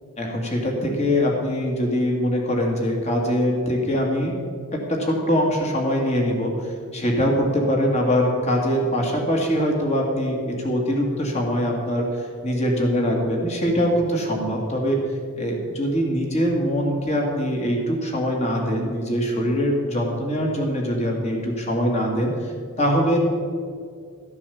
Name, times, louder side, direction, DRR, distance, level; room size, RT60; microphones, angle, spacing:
voice 1, 0.2-4.4 4.9-12.1 12.4-15.0 15.4-22.3 22.8-23.2, equal, 30° left, 1 dB, 2.1 m, -23 dB
13.5 x 7.3 x 7.1 m, 2.2 s
head